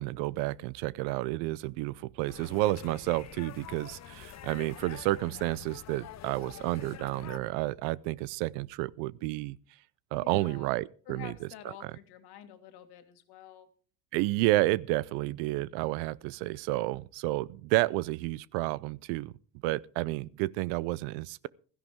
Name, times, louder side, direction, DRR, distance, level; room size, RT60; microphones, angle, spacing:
voice 1, 0.0-9.6 10.1-11.5 14.1-19.3 19.6-21.5, right 18 dB, 80° right, 0.6 m, -31 dB
sound 1, 2.3-7.4, left 12 dB, 40° left, 0.7 m, -46 dB
voice 2, 10.1-10.7 11.1-13.7, left 11 dB, 65° left, 2.0 m, -49 dB
16.0 x 13.5 x 3.6 m
supercardioid pair, 100°, 42 cm